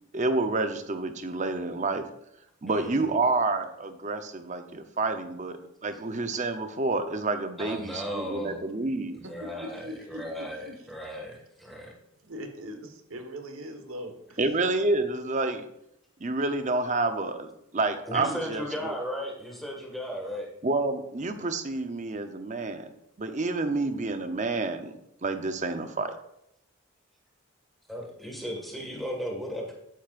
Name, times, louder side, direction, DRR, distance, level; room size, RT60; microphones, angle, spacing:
voice 1, 0.1-2.0 2.6-9.2 14.4-15.6 16.2-18.9 20.6-22.9 23.2-24.9 25.2-26.1, right 3 dB, 35° right, 8 dB, 0.7 m, -29 dB
voice 2, 2.7-3.1 7.6-8.6 9.2-11.9 18.1-20.5 27.9-29.7, equal, ahead, -1 dB, 1.8 m, -36 dB
voice 3, 9.2-10.9 12.2-14.4, equal, 85° right, 5 dB, 1.5 m, -41 dB
12.0 x 9.3 x 2.5 m, 0.79 s
head